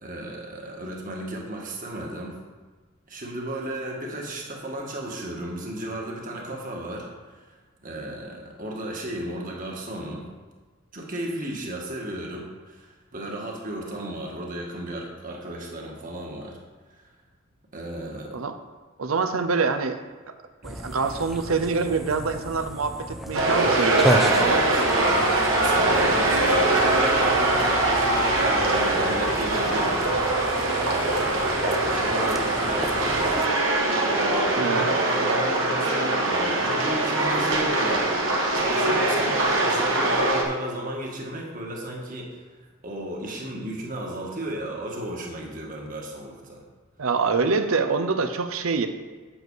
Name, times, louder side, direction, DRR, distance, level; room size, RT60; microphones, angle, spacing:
voice 1, 0.0-2.4 3.1-7.1 7.3-7.4 7.8-10.2 10.9-16.6 17.0-17.1 17.7-18.4 20.6-20.7 24.1-24.8 25.6-30.3 30.9-33.4 34.0-38.2 38.5-42.4 42.8-46.6, right 1 dB, 40° right, -1 dB, 1.6 m, -34 dB
voice 2, 19.0-20.0 20.6-25.3 25.8-26.2 34.6-34.9 47.0-48.9, right 4 dB, 90° right, 8 dB, 0.8 m, -26 dB
sound 1, 20.6-33.5, equal, ahead, 0.4 m, -34 dB
sound 2, 23.3-40.4, right 2 dB, 70° right, 1.6 m, -22 dB
7.9 x 7.9 x 4.7 m, 1.4 s
head